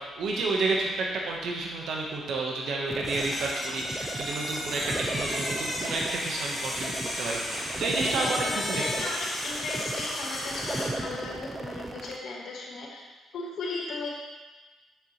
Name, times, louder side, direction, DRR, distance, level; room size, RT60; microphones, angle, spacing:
voice 1, 0.0-8.8, right 3 dB, 70° right, -1 dB, 1.2 m, -30 dB
sound 1, 2.9-12.2, right 2 dB, 25° right, 0.7 m, -37 dB
sound 2, 3.0-11.0, left 1 dB, 30° left, 2.5 m, -34 dB
voice 2, 8.1-9.2 9.4-13.0 13.3-14.1, left 3 dB, 70° left, -3 dB, 1.6 m, -36 dB
8.3 x 6.9 x 3.2 m, 1.2 s
cardioid pair, 90°, 0 cm